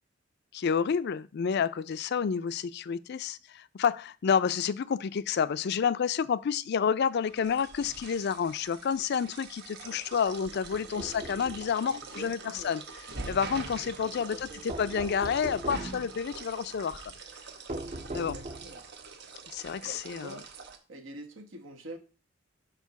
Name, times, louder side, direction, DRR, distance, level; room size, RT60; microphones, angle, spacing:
voice 1, 0.5-12.8 13.3-17.0 18.1-18.4 19.5-20.3, left 7 dB, 60° left, 0.4 m, -29 dB
sound 1, 7.2-20.8, right 4 dB, 60° right, 1.0 m, -44 dB
sound 2, 10.7-11.7 14.7-16.0 17.7-18.9, right 1 dB, 35° right, 0.6 m, -39 dB
voice 2, 11.8-12.8 14.0-14.7 18.0-18.8 19.8-20.4 20.9-22.0, right 1 dB, 85° right, 1.2 m, -46 dB
5.0 x 4.6 x 5.7 m
head